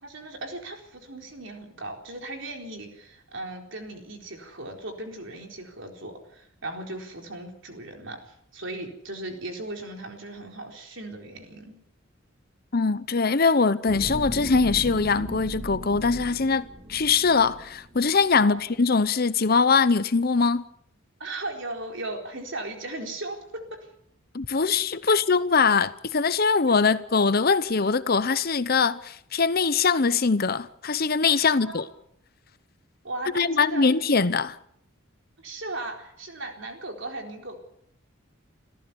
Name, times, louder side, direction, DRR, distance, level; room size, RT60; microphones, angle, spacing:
voice 1, 0.0-11.8 18.4-18.6 21.2-23.6 25.1-25.2 26.9-27.0 31.5-31.8 33.0-33.9 35.4-37.6, right 2 dB, 65° right, 4.1 m, -37 dB
voice 2, 12.7-20.6 24.3-31.9 33.3-34.6, left 4 dB, 50° left, 0.8 m, -22 dB
sound 1, 13.8-18.4 18.8-19.0, equal, 25° right, 2.4 m, -37 dB
27.5 x 14.5 x 7.0 m
head